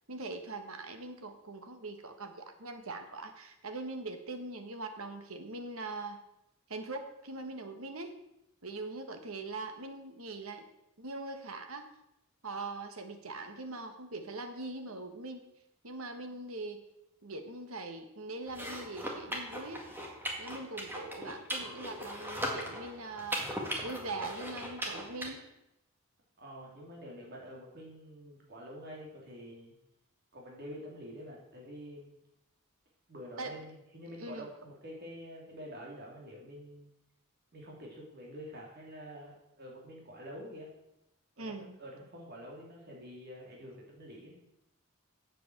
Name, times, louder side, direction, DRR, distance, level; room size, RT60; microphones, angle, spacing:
voice 1, 0.1-6.2 6.7-8.2 8.6-10.6 11.0-11.9 12.4-15.4 15.8-16.8 17.2-19.9 20.4-23.6 23.8-25.4 33.4-33.7 34.2-34.5 41.4-41.7, right 2 dB, 70° right, 7 dB, 1.5 m, -42 dB
sound 1, 18.5-25.3, equal, 10° right, 1.9 m, -39 dB
voice 2, 26.4-29.7 30.3-32.1 33.1-36.9 37.5-40.7 41.4-44.4, equal, 50° right, -2 dB, 3.1 m, -47 dB
8.2 x 7.7 x 7.8 m, 0.85 s
head